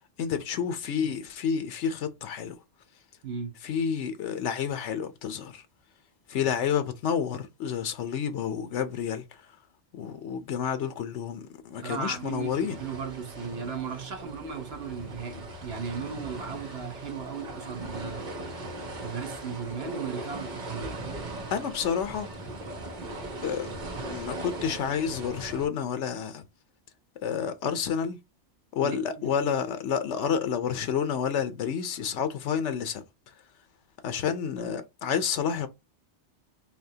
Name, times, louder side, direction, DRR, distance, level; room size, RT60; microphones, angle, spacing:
voice 1, 0.2-2.6 3.6-5.6 6.3-9.2 9.9-12.8 21.5-22.3 23.4-23.7 24.1-26.4 27.2-28.2 28.7-33.0 34.0-35.7, left 7 dB, 85° left, 1.0 m, -29 dB
sound 1, 11.7-25.7, right 2 dB, 45° right, 1.1 m, -39 dB
voice 2, 11.8-18.2 18.9-21.0 28.8-29.4, right 6 dB, 60° right, 1.2 m, -36 dB
4.1 x 2.8 x 2.7 m
omnidirectional pair, 1.2 m